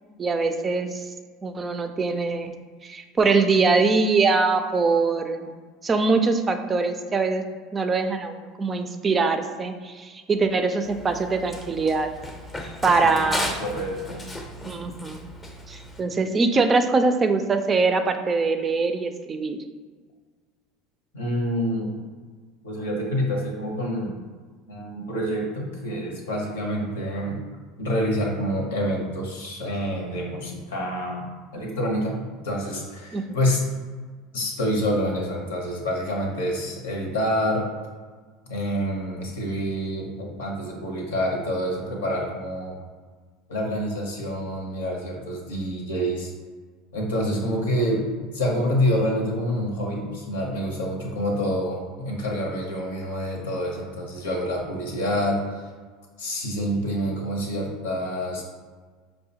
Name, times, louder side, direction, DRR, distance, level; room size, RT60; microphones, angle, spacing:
voice 1, 0.2-1.0 1.4-2.5 2.8-5.5 5.8-7.4 7.7-12.1 12.8-13.5 14.6-15.3 15.7-19.6 33.1-33.2, right 4 dB, 30° right, 7 dB, 0.3 m, -23 dB
Run, 10.8-16.0, left 1 dB, 20° left, 0.6 m, -35 dB
voice 2, 13.0-14.3 21.1-22.0 22.6-24.2 24.7-27.4 27.8-33.6 34.3-37.7 38.4-42.8 43.5-46.3 46.9-55.7 56.2-58.4, equal, 85° left, 0 dB, 0.7 m, -27 dB
4.7 x 2.1 x 2.8 m, 1.5 s
hypercardioid pair, 85°, 0 cm